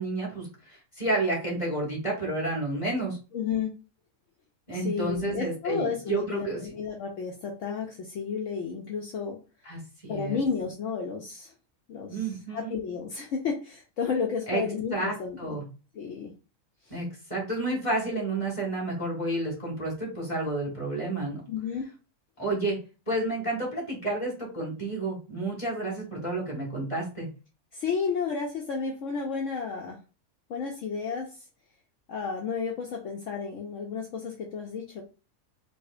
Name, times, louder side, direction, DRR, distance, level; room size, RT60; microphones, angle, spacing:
voice 1, 0.0-3.2 4.7-6.6 9.6-10.4 12.1-12.7 14.5-14.6 14.9-15.6 16.9-21.4 22.4-22.8 23.1-27.3, right 2 dB, 20° left, -3 dB, 1.5 m, -30 dB
voice 2, 3.3-3.7 4.7-9.4 10.1-11.5 11.9-15.6 15.9-16.3 16.9-17.0 21.5-21.9 27.7-30.0 30.5-31.4 32.1-35.0, left 5 dB, 65° left, 0 dB, 0.9 m, -32 dB
4.8 x 2.1 x 2.5 m, 0.33 s
omnidirectional pair, 1.5 m